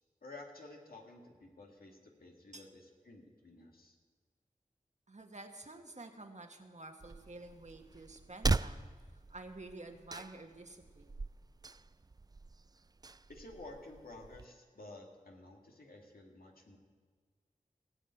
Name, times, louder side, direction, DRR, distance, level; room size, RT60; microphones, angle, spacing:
voice 1, 0.2-4.0 13.3-16.8, left 2 dB, 90° left, 0 dB, 2.0 m, -52 dB
voice 2, 5.1-11.2, right 2 dB, 50° right, 5 dB, 1.4 m, -50 dB
sound 1, 7.0-14.5, right 3 dB, 25° right, 0.3 m, -40 dB
17.0 x 6.4 x 9.0 m, 1.5 s
wide cardioid pair, 40°, 15 cm